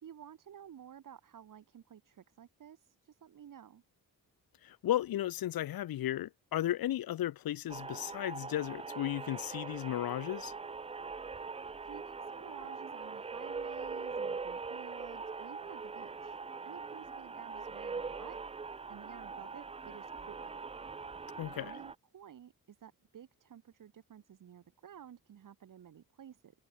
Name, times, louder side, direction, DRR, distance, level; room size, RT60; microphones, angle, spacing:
voice 1, 0.0-3.8 11.8-20.5 21.6-26.5, right 9 dB, 60° right, 1.7 m, -53 dB
voice 2, 4.6-10.5 21.4-21.7, left 13 dB, 75° left, 0.8 m, -34 dB
sound 1, 7.7-22.0, right 4 dB, 20° right, 0.4 m, -42 dB
wide cardioid pair, 135°, 36 cm